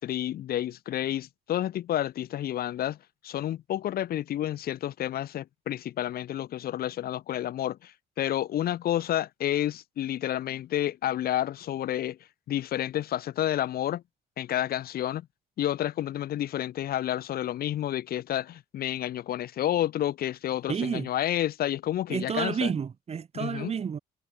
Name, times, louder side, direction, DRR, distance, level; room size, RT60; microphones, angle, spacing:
voice 1, 0.0-3.0 3.2-12.2 12.5-14.0 14.4-15.3 15.6-22.7 23.3-23.7, left 12 dB, 65° left, 5.0 m, -30 dB
voice 2, 20.7-21.1 22.1-24.0, right 7 dB, 35° right, 3.4 m, -30 dB
cardioid pair, 110°, 17 cm